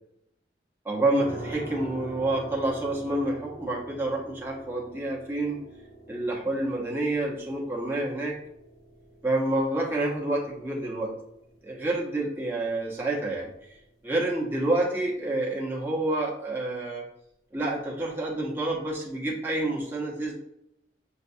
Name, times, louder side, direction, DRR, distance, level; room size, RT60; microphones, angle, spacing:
voice 1, 0.8-5.6 6.1-8.4 9.2-11.2 11.6-13.5 14.0-17.0 17.5-20.3, right 2 dB, 15° right, -4 dB, 0.9 m, -28 dB
sound 1, 1.2-14.0, right 2 dB, 20° left, 0.7 m, -45 dB
6.4 x 2.3 x 2.6 m, 0.79 s
head